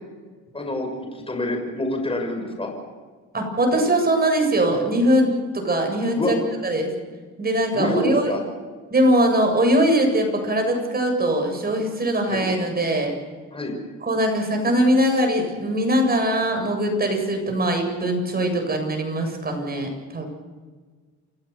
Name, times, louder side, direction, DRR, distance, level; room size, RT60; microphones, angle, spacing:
voice 1, 0.5-2.7 6.2-6.3 7.7-8.4 12.3-12.5 13.5-13.7, left 1 dB, 20° left, 2 dB, 6.4 m, -26 dB
voice 2, 3.3-6.4 6.6-6.9 7.4-8.3 8.9-13.1 14.0-20.2, right 1 dB, 30° right, 4 dB, 7.7 m, -21 dB
29.0 x 16.0 x 7.1 m, 1.5 s
cardioid pair, 90°, 30 cm